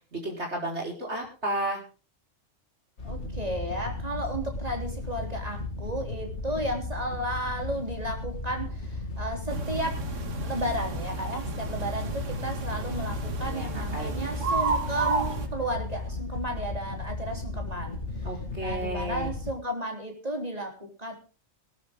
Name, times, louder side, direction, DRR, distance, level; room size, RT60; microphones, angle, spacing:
voice 1, 0.1-1.8 13.4-14.3 18.2-19.3, right 1 dB, 60° right, 1 dB, 5.1 m, -33 dB
Wind / Boat Water vehicle, 3.0-19.5, left 3 dB, 65° left, 2.6 m, -35 dB
voice 2, 3.0-10.0 10.4-18.0 18.6-21.1, right 1 dB, 30° right, 2 dB, 3.8 m, -33 dB
sound 1, 9.5-15.5, right 4 dB, 80° right, 1.9 m, -32 dB
19.0 x 13.0 x 3.7 m, 0.35 s
omnidirectional pair, 1.3 m